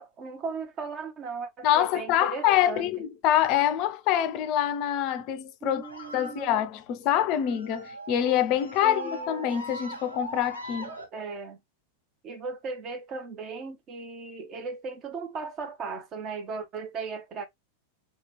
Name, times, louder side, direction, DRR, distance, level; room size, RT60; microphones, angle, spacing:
voice 1, 0.0-3.1 5.6-6.6 8.8-9.5 10.8-11.6 12.2-17.4, right 4 dB, 30° right, 0.7 m, -37 dB
voice 2, 1.6-10.9, left 11 dB, 40° left, 0.4 m, -25 dB
sound 1, 5.8-11.1, right 1 dB, 85° right, 0.8 m, -40 dB
2.8 x 2.3 x 2.8 m
figure-of-eight pair, 90°, 0 cm